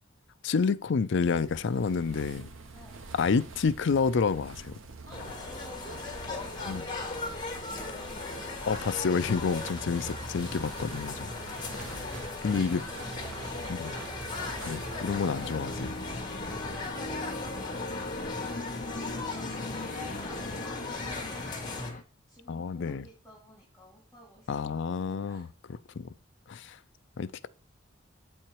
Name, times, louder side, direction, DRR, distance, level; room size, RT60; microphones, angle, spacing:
voice 1, 0.4-2.5 3.1-4.7 6.7-6.8 8.7-11.3 11.7-12.1 12.4-12.8 13.7-13.9 14.6-15.9 22.5-23.1 24.5-25.5 26.0-26.1 26.5-26.8 27.2-27.5, left 5 dB, 65° left, 0.4 m, -29 dB
sound 1, 1.2-16.9, right 3 dB, 80° right, 0.9 m, -46 dB
sound 2, 5.1-21.9, left 3 dB, 25° left, 1.6 m, -37 dB
voice 2, 5.1-6.6 7.5-8.1 12.0-13.4 16.6-17.5 18.5-21.9 22.3-24.5 25.2-25.5, equal, 5° left, 2.7 m, -53 dB
sound 3, 15.3-22.0, left 2 dB, 40° left, 0.9 m, -40 dB
7.8 x 4.4 x 4.6 m
head